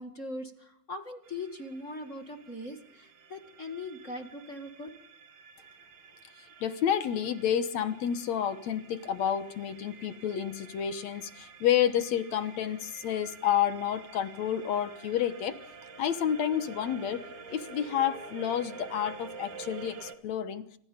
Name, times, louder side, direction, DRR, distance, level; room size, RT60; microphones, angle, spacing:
voice 1, 0.0-4.9, left 2 dB, 30° left, 5 dB, 1.4 m, -40 dB
sound 1, 1.2-20.1, right 5 dB, 45° right, 2.5 m, -49 dB
voice 2, 6.6-15.6 16.0-20.6, left 9 dB, 70° left, 11 dB, 1.7 m, -30 dB
29.0 x 26.5 x 5.2 m, 0.69 s
omnidirectional pair, 4.6 m